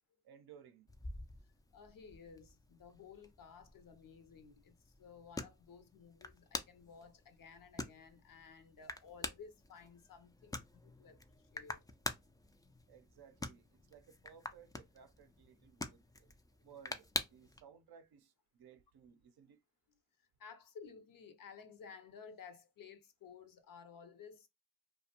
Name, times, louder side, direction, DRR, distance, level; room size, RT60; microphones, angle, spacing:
voice 1, 0.2-0.9 12.9-16.3 16.6-19.6, right 7 dB, 60° right, 0.6 m, -60 dB
Base Lid Make-up, 0.9-17.6, left 2 dB, 10° left, 0.3 m, -47 dB
voice 2, 1.7-11.8 20.2-24.5, left 6 dB, 50° left, 0.6 m, -55 dB
2.4 x 2.1 x 2.8 m
supercardioid pair, 50°, 43 cm